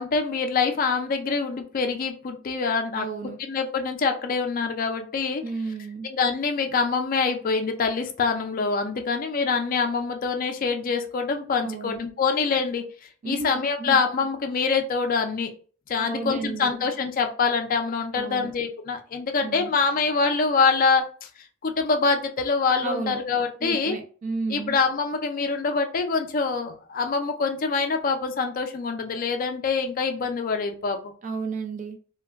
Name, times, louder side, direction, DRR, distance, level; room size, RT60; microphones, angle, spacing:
voice 1, 0.0-3.1 3.5-5.4 6.0-12.9 13.2-15.5 15.9-21.1 21.6-24.0 24.5-31.1, left 4 dB, 45° left, 6 dB, 0.4 m, -25 dB
voice 2, 2.9-3.4 5.4-6.1 11.6-12.0 13.2-13.5 13.8-14.0 16.0-16.8 18.1-18.5 19.4-19.7 22.8-23.2 23.6-24.7 31.2-32.0, right 4 dB, 40° right, 5 dB, 0.3 m, -32 dB
2.2 x 2.1 x 3.3 m, 0.41 s
head